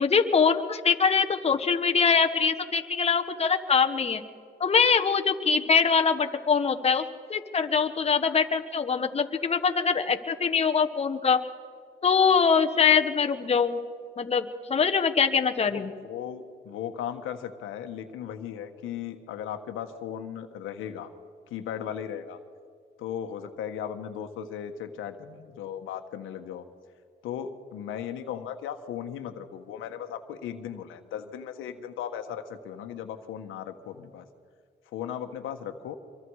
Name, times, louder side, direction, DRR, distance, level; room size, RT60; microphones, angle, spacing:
voice 1, 0.0-4.2 4.6-11.4 12.0-13.8 14.2-15.9, left 6 dB, 30° left, 5 dB, 1.3 m, -23 dB
voice 2, 15.7-21.1 21.5-22.4 23.0-26.6 27.2-34.3 34.9-36.0, left 9 dB, 90° left, 7 dB, 1.4 m, -37 dB
25.0 x 23.0 x 4.8 m, 2.1 s
cardioid pair, 90°, 20 cm